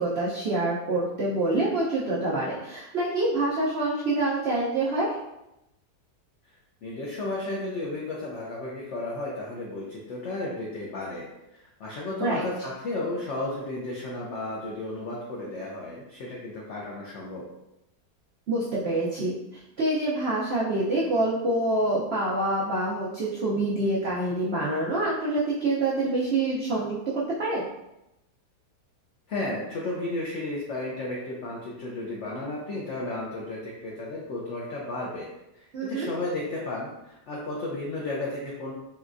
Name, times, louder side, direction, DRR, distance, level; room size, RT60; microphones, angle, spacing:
voice 1, 0.0-5.2 12.2-12.4 18.5-27.7 35.7-36.1, right 2 dB, 85° right, -6 dB, 0.5 m, -26 dB
voice 2, 6.8-17.4 29.3-35.3 35.5-38.7, left 2 dB, 85° left, -4 dB, 0.6 m, -33 dB
4.1 x 2.2 x 2.5 m, 0.89 s
omnidirectional pair, 1.9 m